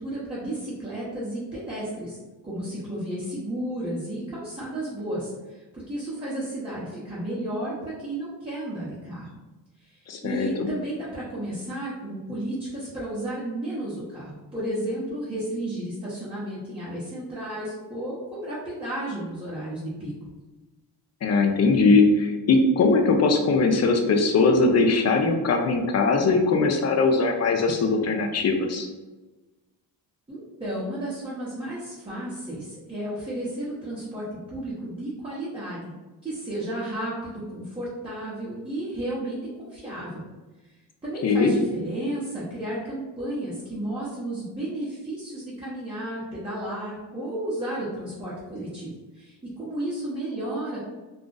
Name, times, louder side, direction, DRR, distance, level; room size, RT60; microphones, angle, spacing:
voice 1, 0.0-2.2 2.4-9.3 9.8-20.1 30.3-35.9 36.2-40.2 41.0-50.8, right 1 dB, 10° right, -9 dB, 0.9 m, -33 dB
voice 2, 10.1-10.7 21.2-28.9 41.2-41.5, left 3 dB, 40° left, 4 dB, 0.5 m, -20 dB
2.5 x 2.4 x 3.8 m, 1.2 s
cardioid pair, 105°, 43 cm